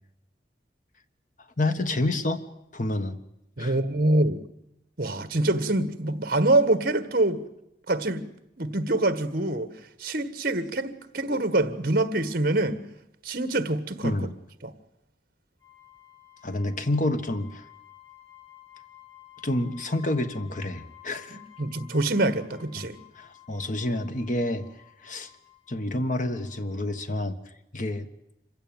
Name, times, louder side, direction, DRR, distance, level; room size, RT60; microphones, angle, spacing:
voice 1, 1.6-2.4 2.7-3.2 3.6-3.8 14.0-14.3 16.4-17.6 19.4-21.4 23.1-24.7 25.0-25.3 25.7-27.4 27.7-28.1, left 1 dB, 45° left, 1.5 m, -28 dB
voice 2, 3.6-4.4 5.0-7.4 7.9-8.3 8.6-9.7 10.0-12.8 13.2-14.1 14.6-14.7 21.6-23.0, right 2 dB, 55° right, 1.6 m, -25 dB
sound 1, 15.6-27.0, left 14 dB, 20° left, 6.7 m, -53 dB
26.0 x 16.0 x 9.2 m
head